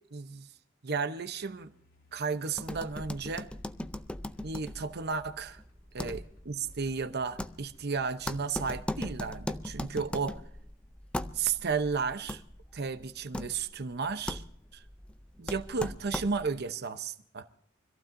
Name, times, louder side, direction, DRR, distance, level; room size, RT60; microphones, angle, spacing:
voice 1, 0.1-0.5 0.8-1.7 2.1-3.5 4.4-5.6 5.9-10.4 11.3-12.4 12.7-14.4 14.7-14.8 15.4-17.5, right 5 dB, 55° right, 0.8 m, -33 dB
sound 1, 1.1-10.2, left 1 dB, 90° left, 3.1 m, -63 dB
sound 2, 2.5-16.6, left 1 dB, 5° left, 0.5 m, -40 dB
25.0 x 15.0 x 2.6 m
head